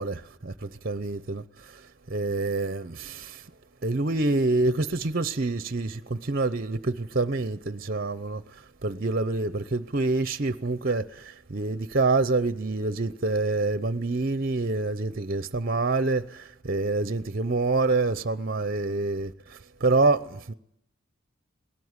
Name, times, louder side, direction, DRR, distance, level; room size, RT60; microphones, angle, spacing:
voice 1, 0.0-3.5 3.8-20.5, right 3 dB, 45° right, 0.8 m, -27 dB
20.5 x 18.5 x 9.7 m
head